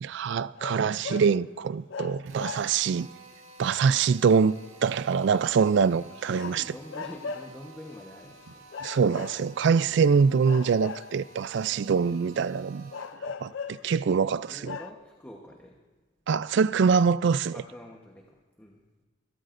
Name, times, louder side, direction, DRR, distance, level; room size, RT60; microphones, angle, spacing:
voice 1, 0.0-3.1 3.6-6.6 8.8-12.9 13.4-14.8 16.3-17.6, right 6 dB, 55° right, 0.3 m, -24 dB
sound 1, 0.5-1.4 1.9-3.0 6.3-7.6 8.7-9.8 10.4-11.4 12.9-13.9 14.3-14.4 14.6-14.9, left 5 dB, 60° left, 0.5 m, -38 dB
Drill, 2.2-13.3, right 3 dB, 80° right, 1.9 m, -51 dB
voice 2, 5.1-5.7 6.1-8.7 9.8-10.2 12.0-12.6 14.5-15.8 17.5-18.8, left 1 dB, 10° left, 1.0 m, -47 dB
27.0 x 13.5 x 2.6 m
head